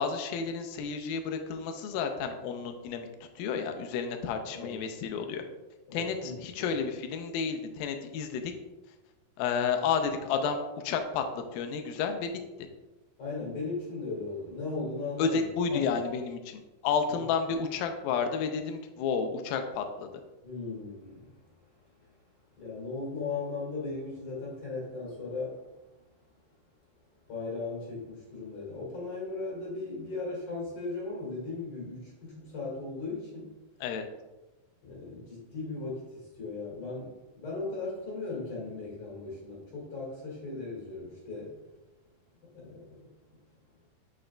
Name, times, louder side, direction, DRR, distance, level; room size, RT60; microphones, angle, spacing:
voice 1, 0.0-3.1 3.4-5.4 5.9-8.5 9.4-11.2 11.5-12.3 15.2-20.1 33.8-34.0, left 6 dB, 80° left, 6 dB, 2.2 m, -31 dB
voice 2, 5.9-6.7 13.2-15.4 15.7-15.9 17.1-17.2 20.4-21.3 22.6-25.6 27.3-33.5 34.8-41.5 42.5-43.1, left 3 dB, 45° left, -4 dB, 2.3 m, -37 dB
6.9 x 6.3 x 2.2 m, 1.1 s
omnidirectional pair, 4.5 m